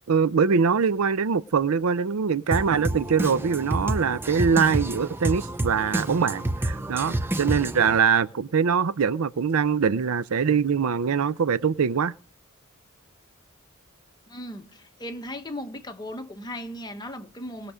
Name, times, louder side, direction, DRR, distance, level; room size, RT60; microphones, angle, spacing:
voice 1, 0.1-12.1, right 6 dB, 70° right, 0.5 m, -23 dB
Drum kit, 2.5-8.0, right 1 dB, 10° right, 0.6 m, -29 dB
voice 2, 14.3-17.7, left 1 dB, 20° left, 1.2 m, -37 dB
20.0 x 6.7 x 5.0 m
head